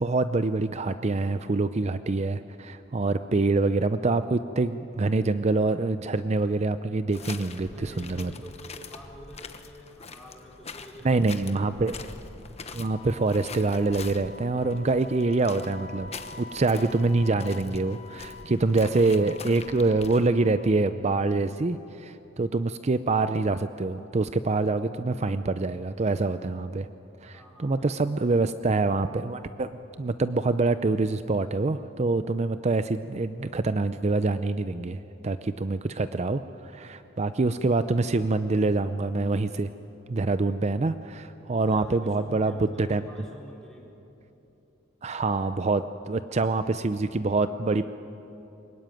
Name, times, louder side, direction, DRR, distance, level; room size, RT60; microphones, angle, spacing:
voice 1, 0.0-8.3 11.0-12.0 12.7-16.1 16.4-26.9 27.2-29.7 30.0-39.7 40.1-43.0 45.0-47.9, right 3 dB, 35° right, 11 dB, 0.5 m, -25 dB
sound 1, 7.1-20.3, left 4 dB, 35° left, 1.1 m, -44 dB
voice 2, 7.1-11.8 27.3-28.8 41.7-44.0, equal, 5° left, -3 dB, 4.2 m, -47 dB
Wind instrument woodwind instrument, 12.7-21.0, left 3 dB, 70° left, 2.0 m, -47 dB
23.5 x 20.5 x 9.2 m, 2.9 s
head